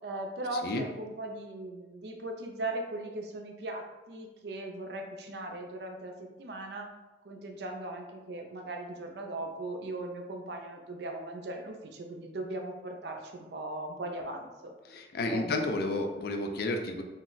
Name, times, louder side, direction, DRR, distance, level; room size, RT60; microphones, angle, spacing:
voice 1, 0.0-6.1 6.4-6.9 7.2-14.7 15.3-15.6, right 2 dB, 70° right, 3 dB, 0.4 m, -38 dB
voice 2, 14.9-17.0, left 2 dB, 60° left, 4 dB, 0.3 m, -31 dB
2.3 x 2.0 x 3.8 m, 1.1 s
head